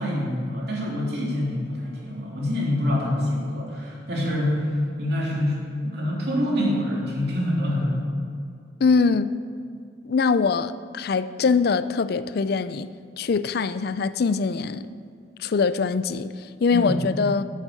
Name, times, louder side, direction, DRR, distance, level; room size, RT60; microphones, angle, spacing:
voice 1, 0.0-8.1 16.7-17.0, left 1 dB, 60° right, -3 dB, 3.0 m, -26 dB
voice 2, 8.8-9.4 10.1-12.9 13.2-14.8 15.4-17.4, left 5 dB, 60° left, 15 dB, 0.4 m, -23 dB
13.0 x 7.4 x 6.9 m, 2.3 s
head